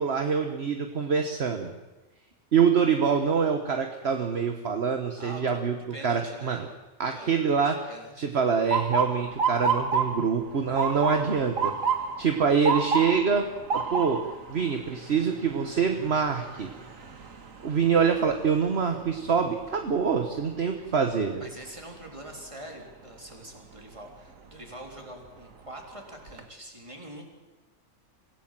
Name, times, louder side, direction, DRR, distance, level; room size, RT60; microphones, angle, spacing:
voice 1, 0.0-1.7 2.5-5.7 6.0-6.7 7.0-7.8 8.2-11.7 12.2-13.5 13.7-14.2 14.5-16.7 17.6-21.4, right 6 dB, 50° right, 5 dB, 1.5 m, -25 dB
voice 2, 5.2-5.6 5.9-6.6 7.1-8.3 21.4-27.2, right 1 dB, 25° right, 2 dB, 3.8 m, -44 dB
Motor vehicle (road) / Siren, 8.7-20.6 21.0-21.5 22.3-22.6 24.4-24.7 25.2-25.3 25.7-26.4, right 5 dB, 80° right, 2.1 m, -31 dB
25.5 x 16.5 x 7.6 m, 1.1 s
omnidirectional pair, 1.4 m